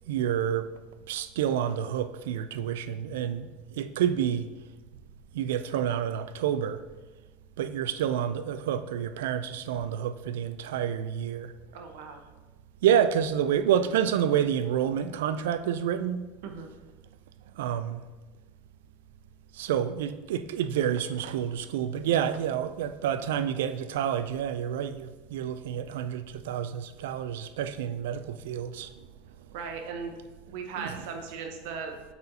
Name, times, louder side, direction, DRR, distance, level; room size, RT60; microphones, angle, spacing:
voice 1, 0.1-0.7 1.1-3.5 3.8-4.5 5.3-6.8 7.6-11.5 12.8-16.2 17.6-18.0 19.5-28.9 30.8-31.0, right 9 dB, 80° right, 0.3 m, -28 dB
voice 2, 11.7-12.3 16.4-16.7 29.5-30.1 30.5-32.1, right 5 dB, 55° right, 0.8 m, -38 dB
8.5 x 4.1 x 2.7 m
supercardioid pair, 175°, 0 cm